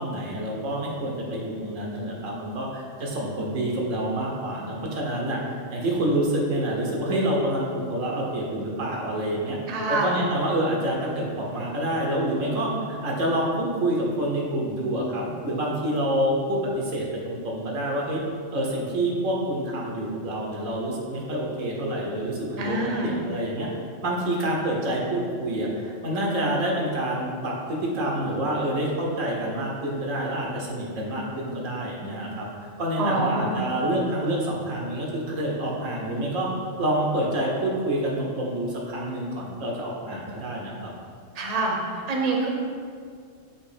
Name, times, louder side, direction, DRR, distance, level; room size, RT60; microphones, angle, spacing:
voice 1, 0.0-9.6 9.9-18.2 18.5-23.7 24.0-32.5 32.8-36.5 36.8-40.9, right 1 dB, 90° right, -2 dB, 1.5 m, -27 dB
voice 2, 9.7-10.1 22.6-23.1 33.0-33.7 41.3-41.8 42.1-42.5, right 2 dB, 35° right, 0 dB, 0.8 m, -26 dB
7.3 x 3.0 x 5.0 m, 2.2 s
omnidirectional pair, 1.3 m